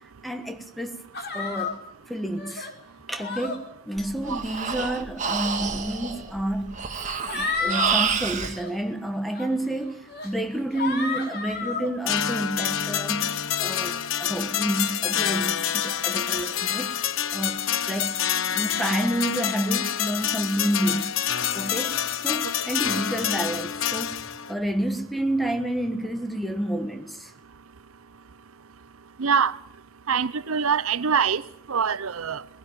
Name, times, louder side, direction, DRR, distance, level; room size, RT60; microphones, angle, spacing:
voice 1, 0.2-1.0 1.3-1.8 2.1-2.7 3.1-6.8 7.3-17.0 17.3-18.2 18.5-21.1 21.5-22.0 22.2-27.3, right 1 dB, ahead, 1.3 m, -29 dB
sound 1, 1.1-1.7 2.4-2.7 3.2-3.6 4.5-4.8 5.9-6.0 6.9-7.9 8.3-8.7 9.3-9.5 10.1-10.3 10.7-11.9, left 4 dB, 50° left, 3.9 m, -31 dB
Breathing, 4.0-8.6, right 6 dB, 35° right, 1.8 m, -28 dB
sound 2, 12.1-24.5, left 9 dB, 65° left, 0.8 m, -27 dB
voice 2, 29.2-29.5 30.1-31.4 31.7-32.4, right 6 dB, 80° right, 0.7 m, -24 dB
20.0 x 16.5 x 9.1 m
head